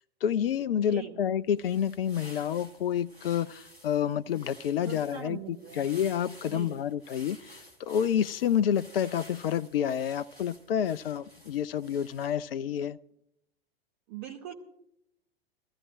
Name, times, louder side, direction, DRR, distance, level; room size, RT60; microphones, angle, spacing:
voice 1, 0.2-13.0, left 9 dB, 65° left, 0.6 m, -29 dB
voice 2, 0.8-1.2 4.8-5.9 6.4-6.8 14.1-14.5, right 11 dB, 45° right, 2.2 m, -41 dB
sound 1, 1.5-12.5, equal, 85° right, 2.9 m, -53 dB
23.5 x 14.5 x 2.5 m
figure-of-eight pair, 95°, 31 cm